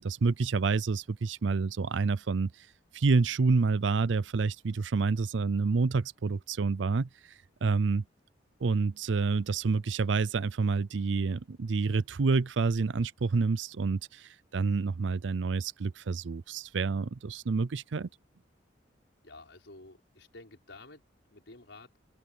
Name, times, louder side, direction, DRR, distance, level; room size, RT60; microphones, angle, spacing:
voice 1, 0.0-2.5 2.9-7.1 7.6-8.0 8.6-18.1, right 4 dB, 75° right, 0.5 m, -28 dB
voice 2, 19.2-21.0 21.3-21.9, left 2 dB, 75° left, 5.4 m, -51 dB
open air
head